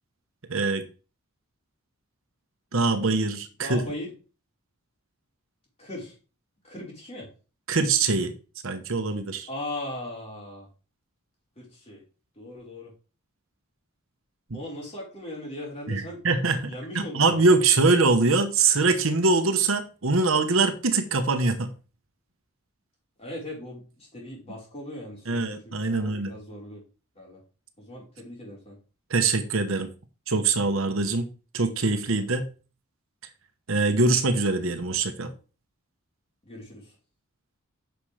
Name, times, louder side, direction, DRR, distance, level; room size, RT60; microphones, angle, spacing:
voice 1, 0.5-0.9 2.7-3.9 7.7-8.3 8.6-9.5 14.5-14.6 15.9-16.7 16.9-21.7 25.3-26.3 29.1-29.9 30.3-31.3 31.5-32.5 33.7-35.3, right 3 dB, 65° right, 1.0 m, -23 dB
voice 2, 3.6-4.1 5.8-6.1 6.6-7.3 9.5-10.7 11.6-12.0 12.4-12.9 14.5-16.2 16.6-17.4 23.2-26.8 27.1-27.4 27.8-28.7 36.4-37.0, left 1 dB, 30° left, 4.5 m, -38 dB
9.3 x 6.4 x 3.3 m
head